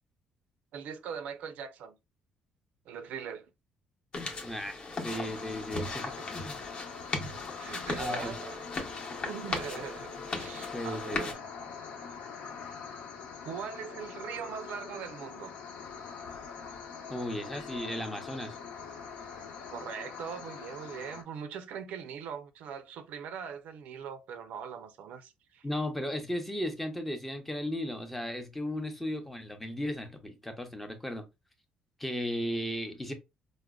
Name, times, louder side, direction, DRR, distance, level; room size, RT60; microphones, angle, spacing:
voice 1, 0.7-2.0 2.9-3.5 6.2-6.3 7.6-8.6 9.2-11.5 13.4-15.5 19.7-25.7, right 7 dB, 70° right, 0.4 m, -41 dB
sound 1, 4.1-11.3, left 3 dB, 35° left, 0.8 m, -38 dB
voice 2, 4.4-6.6 8.0-8.3 10.7-11.2 17.1-18.6 25.6-31.2 32.0-33.1, left 1 dB, 5° left, 0.5 m, -35 dB
sound 2, 5.1-21.2, left 6 dB, 85° left, 0.9 m, -43 dB
4.8 x 2.0 x 2.3 m
cardioid pair, 165°, 3 cm